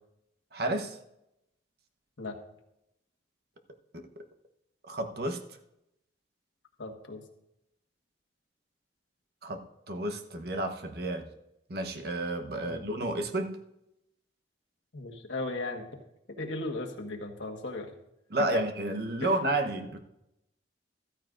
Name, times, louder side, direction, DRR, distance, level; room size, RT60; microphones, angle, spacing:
voice 1, 0.5-1.0 3.9-4.2 4.8-5.4 9.4-11.3 11.7-13.6 18.3-20.0, right 1 dB, 55° right, 5 dB, 1.0 m, -31 dB
voice 2, 6.8-7.2 12.6-12.9 14.9-15.9 16.4-17.9 18.5-18.6 19.2-19.3, left 2 dB, 85° left, 2 dB, 1.5 m, -36 dB
13.5 x 13.5 x 2.5 m, 0.85 s
head